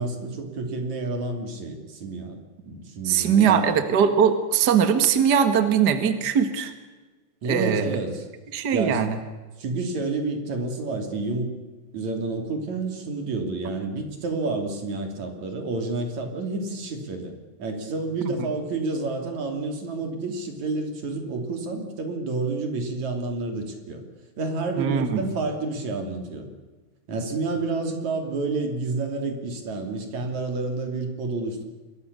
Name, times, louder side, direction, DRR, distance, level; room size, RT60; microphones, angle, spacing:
voice 1, 0.0-3.6 7.4-8.2 8.7-9.0 9.6-11.5 11.9-17.3 17.6-24.0 24.4-26.5 27.1-31.6, right 3 dB, 45° right, 4 dB, 4.1 m, -29 dB
voice 2, 3.0-6.7 7.4-8.0 8.5-9.2 24.8-25.3, right 7 dB, 80° right, 8 dB, 0.9 m, -21 dB
26.5 x 22.0 x 6.9 m, 1.3 s
omnidirectional pair, 4.9 m